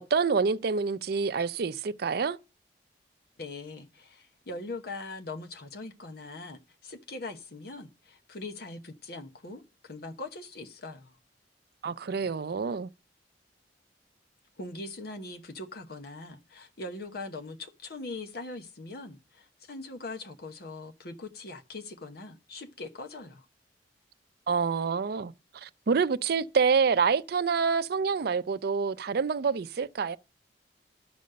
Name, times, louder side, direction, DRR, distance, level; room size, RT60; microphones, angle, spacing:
voice 1, 0.0-2.4 11.8-12.9 24.5-30.2, right 5 dB, 60° right, 0.5 m, -27 dB
voice 2, 3.4-11.2 14.6-23.4, left 2 dB, 60° left, 1.0 m, -41 dB
12.0 x 5.2 x 6.6 m
head